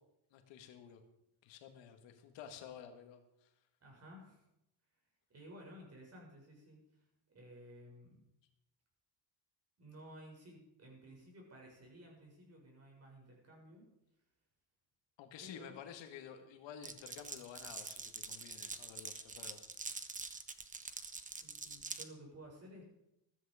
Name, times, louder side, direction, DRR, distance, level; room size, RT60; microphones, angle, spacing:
voice 1, 0.3-1.0 1.4-3.5 15.2-19.6 20.3-20.4, left 8 dB, 85° left, 6 dB, 2.0 m, -52 dB
voice 2, 3.8-4.4 5.3-7.0 7.3-8.2 9.8-13.8 15.4-15.8 21.3-22.8, equal, 35° right, -1 dB, 6.9 m, -55 dB
Glass, 16.8-22.1, right 4 dB, 20° right, 1.0 m, -45 dB
14.0 x 13.5 x 5.0 m, 0.81 s
cardioid pair, 115°, 43 cm